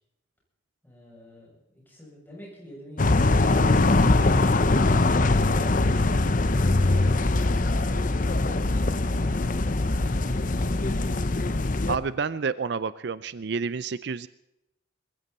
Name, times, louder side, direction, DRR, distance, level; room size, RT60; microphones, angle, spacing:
voice 1, 0.8-3.8 10.2-11.0, equal, 10° left, -4 dB, 7.8 m, -47 dB
sound 1, 3.0-12.0, left 2 dB, 45° left, 0.8 m, -22 dB
voice 2, 11.9-14.3, right 5 dB, 60° right, 16 dB, 0.5 m, -29 dB
21.5 x 15.5 x 4.3 m, 0.86 s
head